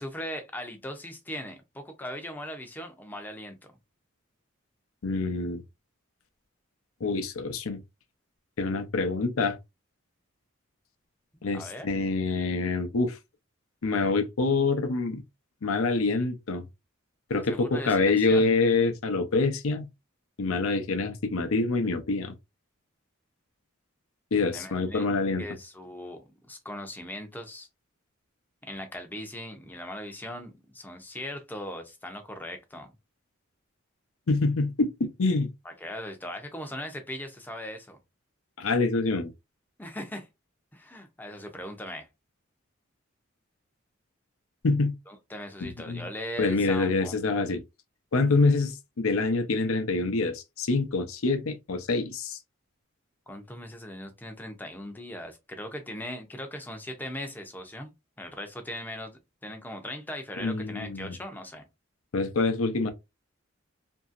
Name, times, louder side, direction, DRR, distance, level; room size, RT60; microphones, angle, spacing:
voice 1, 0.0-3.6 11.3-11.9 17.3-18.5 24.5-25.1 25.4-27.7 28.6-32.9 35.6-38.0 39.8-40.3 40.7-42.1 45.1-47.2 53.3-57.9 58.2-61.7, equal, 10° left, 0.5 m, -39 dB
voice 2, 5.0-5.6 7.0-7.8 8.6-9.6 11.4-13.2 13.8-15.2 15.6-16.7 17.3-19.9 20.4-22.3 24.3-25.4 34.3-35.5 38.6-39.3 44.6-44.9 45.6-46.0 46.4-47.6 48.1-52.4 60.4-61.1 62.1-62.9, left 3 dB, 80° left, 0.6 m, -26 dB
2.8 x 2.7 x 2.4 m
head